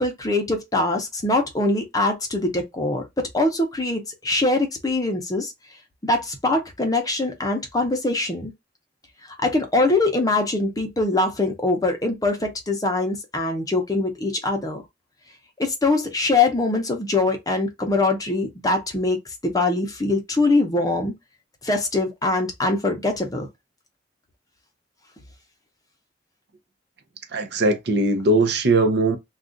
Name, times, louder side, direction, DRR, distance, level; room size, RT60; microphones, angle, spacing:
voice 1, 0.0-5.5 6.0-8.5 9.4-14.8 15.6-21.1 21.6-23.5, left 2 dB, 20° left, 0.7 m, -23 dB
voice 2, 27.3-29.2, right 2 dB, 65° right, 0.6 m, -20 dB
2.4 x 2.3 x 3.8 m
head